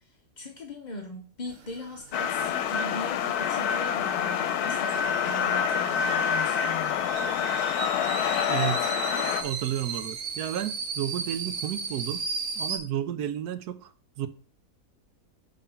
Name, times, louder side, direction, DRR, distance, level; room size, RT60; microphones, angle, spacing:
voice 1, 0.0-7.0, left 2 dB, 45° left, 0.6 m, -40 dB
sound 1, 1.5-12.8, right 5 dB, 60° right, 1.1 m, -37 dB
sound 2, 2.1-9.4, left 8 dB, 85° left, 1.1 m, -27 dB
voice 2, 8.5-8.9 9.4-12.3 12.6-13.9 14.2-14.3, right 11 dB, 85° right, 1.2 m, -32 dB
5.5 x 3.7 x 5.5 m
omnidirectional pair, 1.6 m